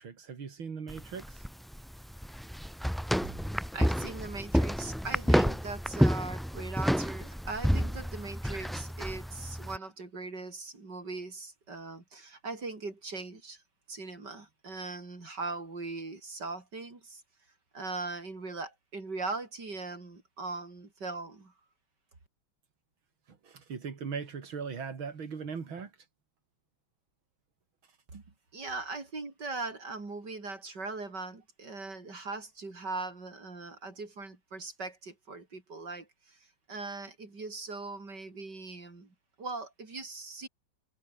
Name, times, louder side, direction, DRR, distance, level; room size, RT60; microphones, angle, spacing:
voice 1, 0.0-1.4 23.4-25.9 28.1-28.2, right 6 dB, 90° right, 3.5 m, -39 dB
sound 1, 0.9-9.8, equal, ahead, 1.1 m, -30 dB
voice 2, 3.7-13.6 13.9-17.2 17.7-21.5 28.5-36.4 36.7-40.5, right 3 dB, 60° right, 5.6 m, -40 dB
omnidirectional pair, 2.1 m